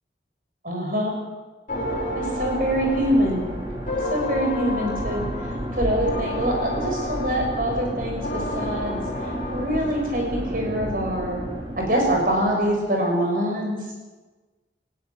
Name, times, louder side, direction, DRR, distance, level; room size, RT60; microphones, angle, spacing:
voice 1, 0.6-1.2 2.1-3.4 4.1-5.2 5.7-9.0 9.5-11.4 11.8-13.8, equal, 50° right, 1 dB, 6.8 m, -24 dB
sound 1, 1.7-10.4, left 2 dB, 45° left, 5.7 m, -32 dB
sound 2, 1.7-12.7, equal, 30° right, 4.6 m, -32 dB
20.0 x 16.0 x 9.0 m, 1.3 s
head